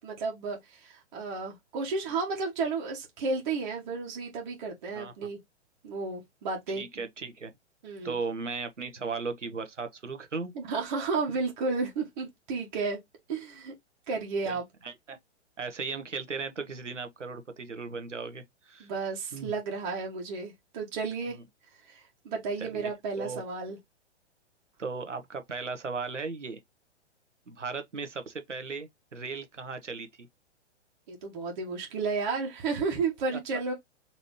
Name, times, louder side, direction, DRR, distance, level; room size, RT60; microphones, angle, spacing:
voice 1, 0.0-5.4 5.8-6.8 7.8-8.2 10.5-13.0 13.3-13.7 14.1-14.6 18.8-21.4 21.9-23.8 31.1-33.7, right 4 dB, 40° right, 1.3 m, -32 dB
voice 2, 4.9-5.3 6.7-7.5 8.0-10.5 11.3-11.4 14.5-15.2 15.6-18.9 19.3-19.5 21.3-21.4 22.6-22.9 23.2-23.4 24.8-26.6 27.5-30.3, right 4 dB, 85° right, 0.9 m, -37 dB
4.0 x 3.0 x 3.0 m
figure-of-eight pair, 115°, 35 cm